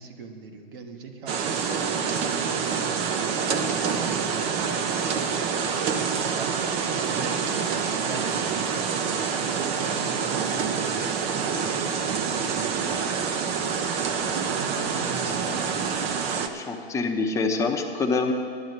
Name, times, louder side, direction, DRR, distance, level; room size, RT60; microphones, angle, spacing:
voice 1, 0.0-5.3 5.9-10.9 11.4-11.9 12.3-13.3 14.3-16.2, right 4 dB, 60° right, 4 dB, 1.6 m, -42 dB
sound 1, 1.3-16.5, right 6 dB, 20° right, 0.5 m, -27 dB
voice 2, 16.5-18.3, left 3 dB, 10° left, 2 dB, 0.8 m, -26 dB
10.5 x 8.3 x 8.1 m, 2.2 s
hypercardioid pair, 135°, 30 cm